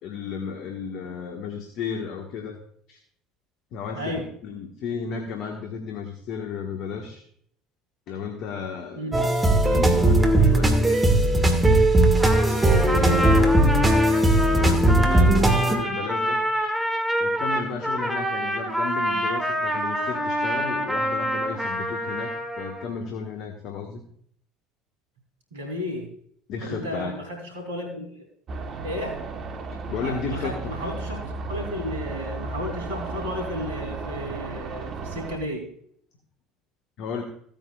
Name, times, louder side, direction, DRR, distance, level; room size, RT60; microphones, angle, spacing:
voice 1, 0.0-2.6 2.9-3.0 3.7-7.2 8.1-9.2 9.6-11.1 12.8-13.3 14.6-16.4 17.2-24.0 26.5-27.1 29.9-30.7 37.0-37.2, left 5 dB, 55° left, 3 dB, 1.4 m, -33 dB
voice 2, 3.9-4.3 8.9-9.2 13.0-13.5 25.5-26.1 26.6-28.2 28.8-29.2 30.0-35.7, equal, 80° right, 2 dB, 3.1 m, -33 dB
sound 1, 9.1-15.8, right 1 dB, 15° right, 1.8 m, -18 dB
Trumpet, 12.0-22.9, equal, ahead, 2.2 m, -27 dB
sound 2, 28.5-35.4, right 3 dB, 45° right, 1.1 m, -34 dB
15.5 x 9.0 x 2.4 m, 0.63 s
figure-of-eight pair, 65°, 0 cm